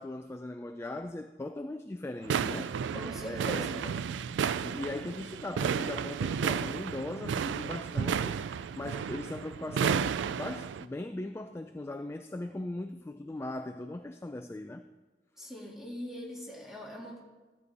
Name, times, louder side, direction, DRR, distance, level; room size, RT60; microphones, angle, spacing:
voice 1, 0.0-2.7 3.3-3.7 4.6-8.4 8.8-14.8, left 2 dB, 15° left, 7 dB, 0.3 m, -39 dB
sound 1, 2.2-10.8, right 7 dB, 90° right, 0.3 m, -32 dB
voice 2, 2.9-4.1 15.4-17.2, equal, 5° right, -2 dB, 1.8 m, -41 dB
13.5 x 8.3 x 4.1 m, 1.2 s
head